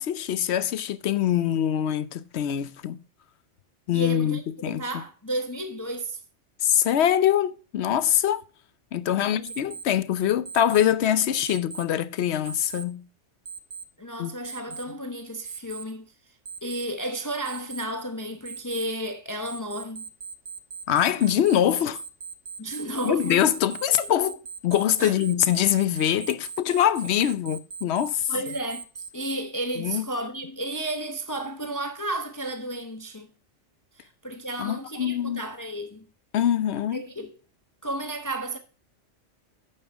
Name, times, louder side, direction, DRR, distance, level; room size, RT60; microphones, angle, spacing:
voice 1, 0.0-3.0 3.9-4.8 6.6-8.4 8.9-13.0 14.2-14.3 20.9-22.0 23.0-28.3 29.8-30.0 34.6-35.4 36.3-37.0, left 10 dB, 70° left, 0.8 m, -24 dB
voice 2, 3.9-6.2 9.2-9.5 14.0-16.0 16.6-20.0 22.6-23.5 25.0-25.4 28.3-33.3 34.0-36.1 36.9-37.3 37.8-38.6, right 1 dB, 20° left, 0.7 m, -33 dB
Alarm, 9.5-9.8 10.5-10.8 11.5-11.8 12.5-12.8 13.5-13.8 14.5-14.8 15.5-15.8 16.5-16.8 17.5-17.8 18.5-18.8 19.5-29.3, right 5 dB, 50° right, 1.0 m, -39 dB
8.9 x 6.9 x 3.4 m
omnidirectional pair, 1.2 m